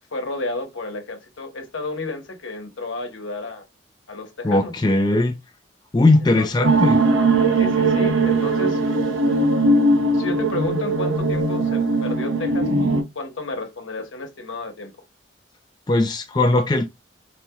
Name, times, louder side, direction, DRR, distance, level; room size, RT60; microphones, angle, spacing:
voice 1, 0.1-3.6 4.1-4.7 6.4-6.7 7.6-8.8 10.1-14.9, left 2 dB, 80° left, 1.0 m, -32 dB
voice 2, 4.4-5.4 5.9-7.0 15.9-16.9, left 2 dB, 20° left, 0.4 m, -18 dB
sound 1, 6.6-13.0, right 2 dB, 90° right, 0.8 m, -19 dB
4.1 x 2.3 x 2.8 m
head